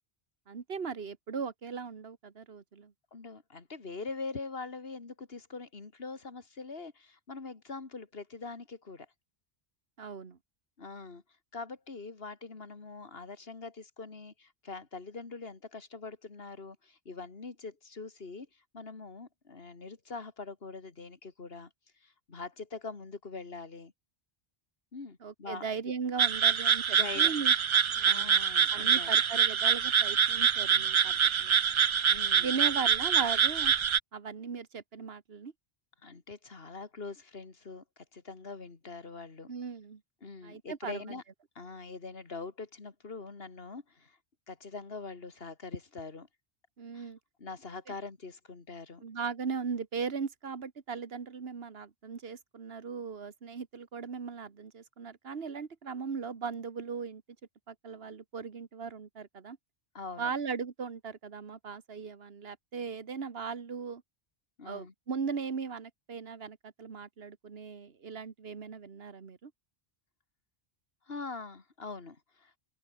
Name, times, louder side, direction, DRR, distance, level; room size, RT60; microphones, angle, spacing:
voice 1, 0.5-2.9 10.0-10.4 25.2-27.5 27.9-28.3 28.7-31.6 32.4-33.7 34.1-35.5 39.5-40.0 40.4-41.2 46.8-47.2 49.0-57.2 57.7-59.6 60.2-64.0 64.6-69.5, right 5 dB, 70° right, 1.7 m, -38 dB
voice 2, 3.1-9.1 10.8-11.2 11.5-21.7 22.0-23.9 24.9-25.7 26.9-27.3 28.1-29.1 32.1-32.6 36.0-39.5 40.2-41.2 41.6-44.2 44.5-46.3 46.9-47.1 47.4-49.0 59.9-60.3 64.6-64.9 71.1-72.6, left 4 dB, 70° left, 2.4 m, -43 dB
sound 1, 26.2-34.0, right 7 dB, 50° right, 0.3 m, -25 dB
open air
omnidirectional pair, 1.0 m